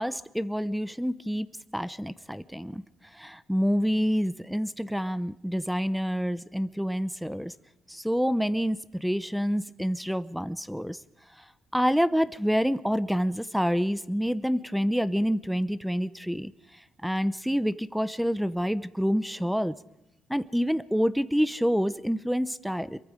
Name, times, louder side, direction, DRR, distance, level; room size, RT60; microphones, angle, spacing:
voice 1, 0.0-1.5 1.7-7.5 7.9-11.0 11.4-11.5 11.7-19.8 20.3-23.0, equal, ahead, 15 dB, 0.7 m, -27 dB
25.5 x 23.0 x 5.1 m, 0.96 s
cardioid pair, 90°, 0 cm